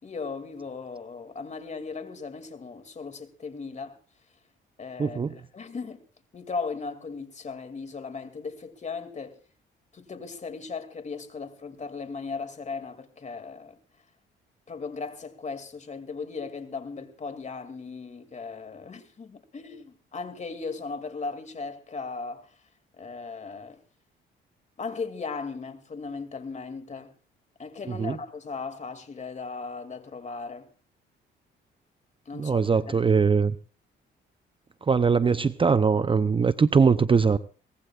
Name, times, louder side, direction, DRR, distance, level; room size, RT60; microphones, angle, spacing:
voice 1, 0.0-4.0 4.8-6.0 6.3-9.4 9.9-13.8 14.7-22.6 23.0-23.8 24.8-27.1 27.6-30.7 32.3-32.6 32.9-33.1, left 4 dB, 35° left, 2.5 m, -37 dB
voice 2, 5.0-5.3 27.9-28.2 32.3-33.6 34.9-37.4, right 5 dB, 25° right, 0.6 m, -21 dB
23.5 x 18.5 x 2.4 m
cardioid pair, 90°, 20 cm